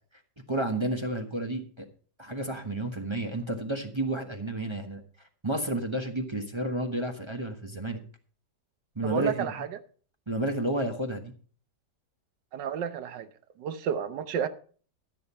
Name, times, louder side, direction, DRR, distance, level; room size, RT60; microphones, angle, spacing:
voice 1, 0.5-1.8 2.2-5.0 5.4-8.0 8.9-9.5 10.3-11.3, right 1 dB, 20° right, 1.0 m, -31 dB
voice 2, 9.0-9.7 12.5-13.3 13.6-14.5, right 8 dB, 80° right, 1.5 m, -31 dB
14.0 x 6.7 x 5.5 m
omnidirectional pair, 1.9 m